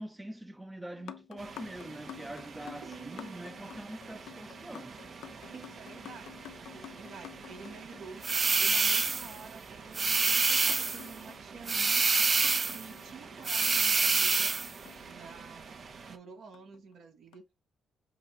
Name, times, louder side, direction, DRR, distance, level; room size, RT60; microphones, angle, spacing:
voice 1, 0.0-5.0, right 1 dB, 10° right, 0.8 m, -44 dB
sound 1, 1.0-8.6 10.7-13.6 14.9-15.9 16.5-16.8 17.3-17.4, left 12 dB, 80° left, 0.7 m, -50 dB
sound 2, 1.4-16.2, right 5 dB, 50° right, 0.9 m, -48 dB
voice 2, 2.8-3.5 5.5-8.2 8.6-12.0 12.7-14.5 15.1-15.8 16.1-17.5, right 5 dB, 70° right, 2.0 m, -49 dB
sound 3, 8.2-9.3 9.9-11.1 11.7-12.8 13.4-14.7, right 4 dB, 35° right, 0.4 m, -26 dB
7.7 x 2.6 x 4.9 m
cardioid pair, 80°, 0 cm